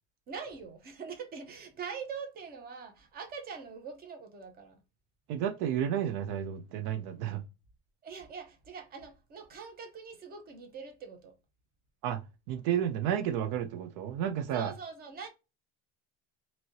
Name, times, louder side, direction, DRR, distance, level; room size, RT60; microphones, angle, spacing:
voice 1, 0.3-4.8 8.0-11.4 14.5-15.3, right 6 dB, 30° right, 0.8 m, -43 dB
voice 2, 5.3-7.4 12.0-12.2 12.5-14.7, right 9 dB, 75° right, 0.5 m, -31 dB
3.0 x 2.8 x 2.7 m
cardioid pair, 150°, 30 cm